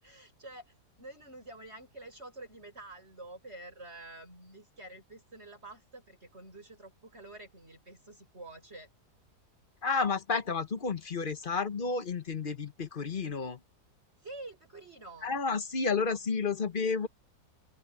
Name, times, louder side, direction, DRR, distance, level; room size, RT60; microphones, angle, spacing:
voice 1, 0.0-8.9 14.2-15.3, right 2 dB, 40° right, 8.0 m, -48 dB
voice 2, 9.8-13.6 15.2-17.1, left 4 dB, 35° left, 1.1 m, -31 dB
open air
omnidirectional pair, 1.8 m